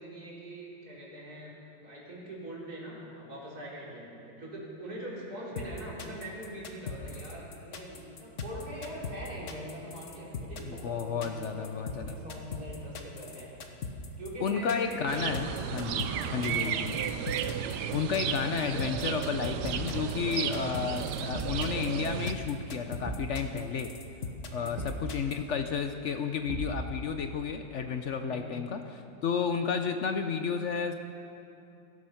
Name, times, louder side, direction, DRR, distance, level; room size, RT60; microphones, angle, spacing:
voice 1, 0.0-13.5 14.2-15.1 15.5-15.7 16.1-16.8 24.5-25.0 28.3-28.6, equal, 55° right, -6 dB, 4.3 m, -43 dB
sound 1, 5.6-25.4, left 4 dB, 45° left, 1.3 m, -40 dB
voice 2, 10.6-12.2 14.4-17.0 17.7-23.9 24.5-30.9, left 6 dB, 65° left, 7 dB, 0.7 m, -32 dB
sound 2, 15.1-22.3, right 9 dB, 70° right, 1.2 m, -33 dB
Thump thud, 19.6-20.1 21.3-21.7 23.0-23.4 24.7-25.1 26.4-27.0, right 2 dB, 30° right, 1.0 m, -37 dB
17.0 x 13.5 x 5.8 m, 2.7 s
omnidirectional pair, 2.0 m